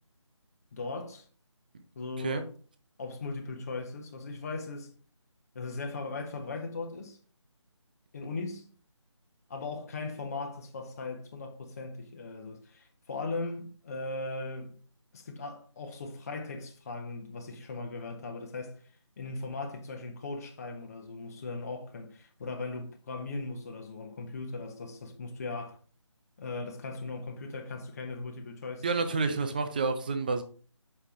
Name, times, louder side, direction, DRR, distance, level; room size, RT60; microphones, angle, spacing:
voice 1, 0.7-1.2 1.9-2.5 3.0-4.9 5.5-7.2 8.1-8.7 9.5-14.8 15.1-18.8 19.2-25.8 26.4-29.4, left 3 dB, 30° left, 1.0 m, -38 dB
voice 2, 28.8-30.4, right 4 dB, 15° right, 0.5 m, -29 dB
6.8 x 5.5 x 3.7 m
figure-of-eight pair, 160°, 16 cm